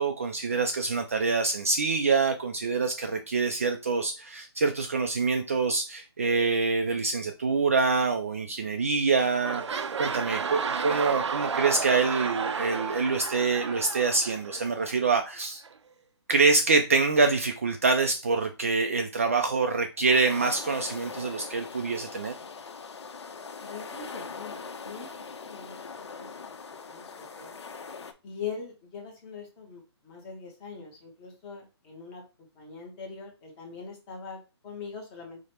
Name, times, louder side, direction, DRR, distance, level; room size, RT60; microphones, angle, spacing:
voice 1, 0.0-15.6 16.3-22.3, right 4 dB, 30° right, 0.3 m, -26 dB
sound 1, 8.6-8.9 9.1-15.0 15.6-15.7, right 6 dB, 85° right, 0.5 m, -32 dB
sound 2, 20.1-28.1, left 5 dB, 75° left, 0.7 m, -41 dB
voice 2, 23.6-25.1 25.4-25.8 26.2-26.3 26.9-27.5 28.2-32.2 32.6-35.4, left 5 dB, 10° left, 0.7 m, -42 dB
4.9 x 2.1 x 4.2 m
hypercardioid pair, 170°, 15 cm